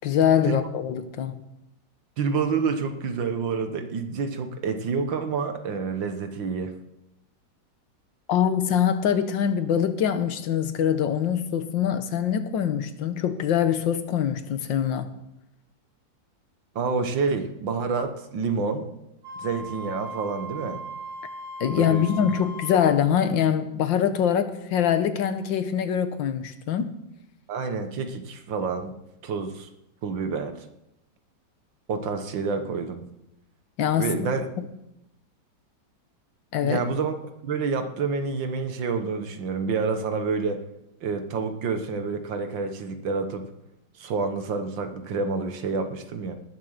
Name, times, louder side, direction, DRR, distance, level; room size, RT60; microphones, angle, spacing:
voice 1, 0.0-1.4 8.3-15.1 21.6-26.9 33.8-34.1 34.6-34.7 36.5-36.8, left 9 dB, 90° left, 1.8 m, -24 dB
voice 2, 2.2-6.7 16.8-18.9 19.4-20.8 21.8-22.4 27.5-28.9 29.2-29.7 30.0-30.5 31.9-33.1 34.0-34.5 36.6-37.2 37.4-40.6 41.0-43.4 44.0-46.3, right 5 dB, 90° right, 2.0 m, -28 dB
Wind instrument woodwind instrument, 19.2-23.0, right 1 dB, 45° right, 3.2 m, -38 dB
18.5 x 7.3 x 6.5 m
omnidirectional pair, 2.0 m